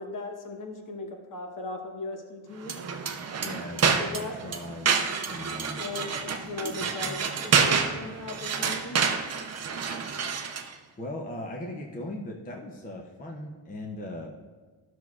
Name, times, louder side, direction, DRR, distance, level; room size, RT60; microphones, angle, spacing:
voice 1, 0.0-2.8 3.9-4.3 5.7-9.0, left 3 dB, 40° left, 3 dB, 1.0 m, -38 dB
sound 1, 2.6-10.7, right 6 dB, 35° right, 0.5 m, -28 dB
voice 2, 3.4-5.8 6.6-7.2 11.0-14.3, left 1 dB, 20° left, 1 dB, 0.5 m, -39 dB
12.5 x 6.0 x 2.4 m, 1.4 s
wide cardioid pair, 150°, 48 cm